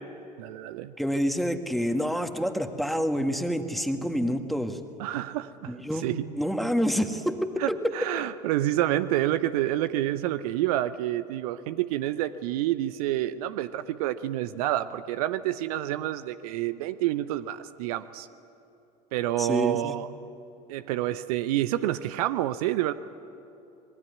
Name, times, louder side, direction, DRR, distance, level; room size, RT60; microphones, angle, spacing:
voice 1, 0.4-0.9 5.0-5.8 6.0-6.3 7.6-18.3 19.1-20.1 20.7-22.9, right 13 dB, 65° right, 13 dB, 0.8 m, -28 dB
voice 2, 1.0-4.8 5.7-6.1 6.3-7.9 19.4-19.9, equal, ahead, 6 dB, 1.9 m, -27 dB
26.0 x 21.0 x 9.5 m, 2.9 s
figure-of-eight pair, 70°, 21 cm